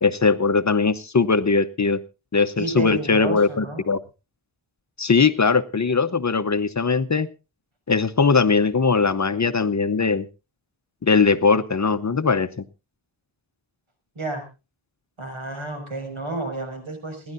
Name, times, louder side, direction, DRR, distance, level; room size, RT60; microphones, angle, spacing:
voice 1, 0.0-2.0 2.3-4.0 5.0-7.3 7.9-10.3 11.0-12.5, left 4 dB, 35° left, 11 dB, 0.8 m, -20 dB
voice 2, 2.6-3.8 14.1-14.5 15.2-17.3, right 2 dB, 75° right, 5 dB, 5.9 m, -31 dB
28.0 x 11.0 x 2.6 m, 0.30 s
wide cardioid pair, 80°, 48 cm